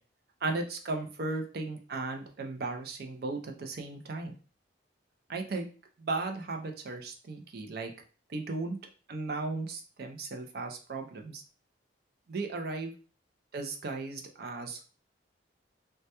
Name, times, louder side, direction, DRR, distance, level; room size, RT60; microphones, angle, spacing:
voice 1, 0.4-4.4 5.3-5.7 6.0-7.9 8.3-8.8 9.1-11.4 12.3-12.9 13.5-14.8, right 3 dB, 55° right, 4 dB, 0.4 m, -36 dB
2.1 x 2.1 x 2.8 m, 0.37 s
head